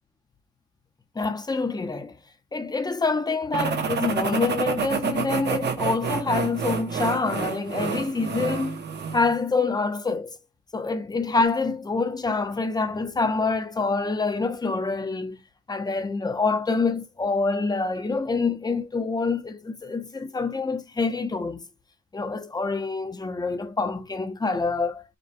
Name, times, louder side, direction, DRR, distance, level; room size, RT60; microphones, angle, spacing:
voice 1, 1.2-2.2 2.5-8.8 9.1-10.4 10.7-15.4 15.7-21.6 22.1-25.0, left 3 dB, 15° left, 0.7 m, -26 dB
sound 1, 3.5-9.3, right 6 dB, 35° right, 0.9 m, -29 dB
5.2 x 2.2 x 4.3 m
cardioid pair, 160°, 30 cm